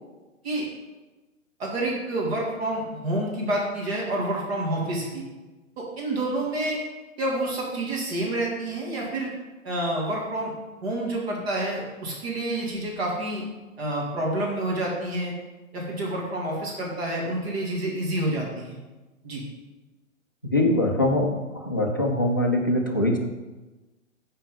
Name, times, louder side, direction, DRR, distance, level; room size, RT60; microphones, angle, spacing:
voice 1, 1.6-5.2 5.8-6.8 7.2-9.3 9.6-10.5 10.8-13.5 13.8-15.3 15.7-18.8 19.2-19.4, right 1 dB, 50° right, -3 dB, 2.4 m, -28 dB
voice 2, 20.5-23.2, left 1 dB, 20° left, -1 dB, 0.3 m, -23 dB
9.2 x 4.5 x 5.0 m, 1.2 s
figure-of-eight pair, 125°, 40 cm